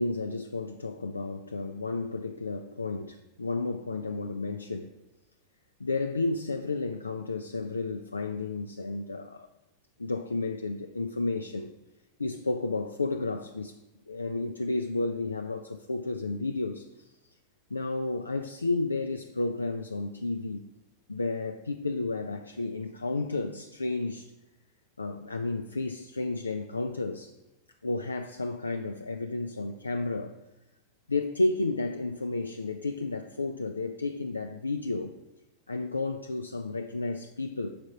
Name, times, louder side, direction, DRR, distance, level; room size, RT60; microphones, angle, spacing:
voice 1, 0.0-4.9 5.8-9.5 10.0-11.7 12.2-13.8 14.1-17.1 17.7-20.7 21.1-24.3 25.0-27.4 27.8-30.4 31.1-35.1 35.7-37.8, left 3 dB, 80° left, 0.3 m, -32 dB
5.1 x 4.9 x 6.3 m
figure-of-eight pair, 90°, 0 cm